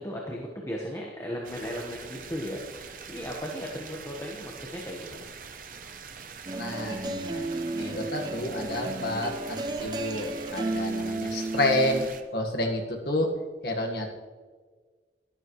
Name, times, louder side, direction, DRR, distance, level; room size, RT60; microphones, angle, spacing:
voice 1, 0.0-5.3 5.8-5.9, equal, 15° left, -2 dB, 1.2 m, -36 dB
sound 1, 1.4-12.2, right 6 dB, 50° right, 0.8 m, -44 dB
sound 2, 6.5-12.1, right 2 dB, 25° right, 0.5 m, -33 dB
voice 2, 6.6-7.4 7.7-13.3 13.6-14.1, left 1 dB, 60° left, 2 dB, 1.6 m, -29 dB
12.0 x 12.0 x 3.2 m, 1.5 s
head